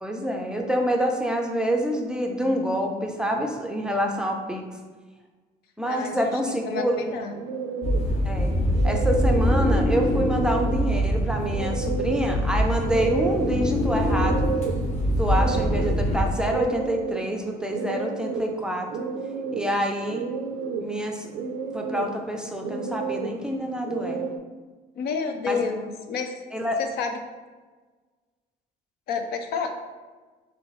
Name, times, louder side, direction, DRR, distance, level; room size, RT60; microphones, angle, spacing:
voice 1, 0.0-4.6 5.8-7.1 8.2-8.5 8.8-14.6 15.2-19.1 19.5-20.3 20.8-21.3 21.7-24.3 25.5-25.6 26.5-26.8, equal, 5° right, 2 dB, 0.5 m, -27 dB
voice 2, 5.9-7.4 25.0-26.4 26.8-27.2 29.1-29.7, left 5 dB, 70° left, 6 dB, 0.5 m, -30 dB
sound 1, 6.8-24.4, right 6 dB, 85° right, 0.4 m, -32 dB
sound 2, 7.8-16.4, equal, 40° left, 0.9 m, -24 dB
sound 3, 9.3-10.8 11.9-14.6, left 2 dB, 20° left, 1.1 m, -30 dB
4.3 x 3.2 x 3.1 m, 1.4 s
cardioid pair, 110°, 17 cm